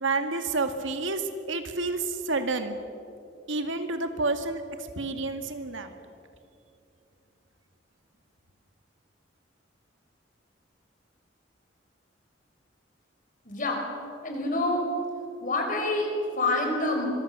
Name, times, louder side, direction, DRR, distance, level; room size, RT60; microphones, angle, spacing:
voice 1, 0.0-2.8 3.5-5.9, right 3 dB, 90° right, 7 dB, 2.0 m, -29 dB
voice 2, 13.5-13.8 14.2-14.8 15.4-17.1, left 2 dB, 45° left, 2 dB, 5.2 m, -27 dB
25.5 x 23.0 x 6.9 m, 2.6 s
head